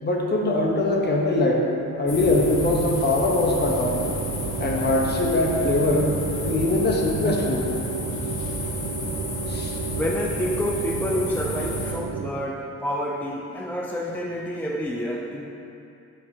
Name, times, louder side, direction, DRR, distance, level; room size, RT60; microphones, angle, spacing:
voice 1, 0.0-1.7 2.0-4.0 4.6-6.1 6.4-7.7 9.5-9.8, left 2 dB, 35° left, -1 dB, 1.0 m, -22 dB
sound 1, 2.1-11.9, left 2 dB, 70° left, 1.1 m, -32 dB
sound 2, 3.8-12.3, right 5 dB, 55° right, 0.5 m, -32 dB
voice 2, 10.0-15.5, equal, 5° left, -1 dB, 0.3 m, -28 dB
7.5 x 5.2 x 2.8 m, 2.7 s
cardioid pair, 90°, 30 cm